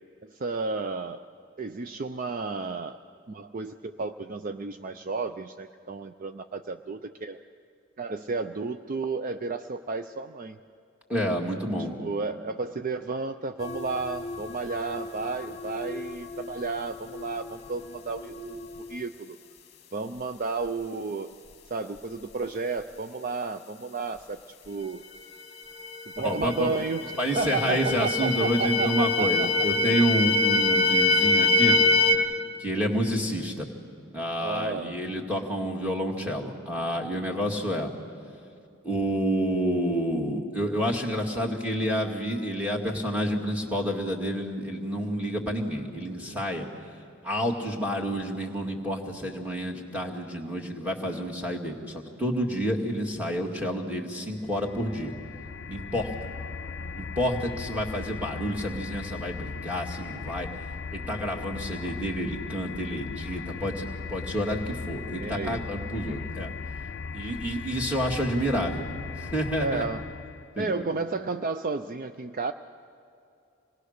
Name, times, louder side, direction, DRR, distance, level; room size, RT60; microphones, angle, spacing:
voice 1, 0.2-1.2 1.6-3.0 3.3-7.4 8.0-10.6 11.6-11.7 12.0-19.4 19.9-21.3 21.7-25.0 26.1-27.1 27.3-29.5 34.4-35.0 56.8-57.1 65.1-65.7 69.6-70.1 70.6-72.5, right 4 dB, 40° right, 9 dB, 0.4 m, -32 dB
voice 2, 11.1-12.0 26.2-26.7 27.2-32.3 32.6-33.7 34.1-37.9 38.8-46.7 47.2-55.1 55.7-56.1 57.0-60.5 60.9-66.5 67.1-68.8 69.2-69.8 70.6-70.9, equal, 5° right, -2 dB, 2.1 m, -29 dB
sound 1, 13.6-19.0 25.2-25.3 25.7-32.2, left 2 dB, 30° left, 1.3 m, -26 dB
sound 2, 54.3-70.5, left 5 dB, 50° left, 0.4 m, -38 dB
26.5 x 19.5 x 6.6 m, 2.6 s
head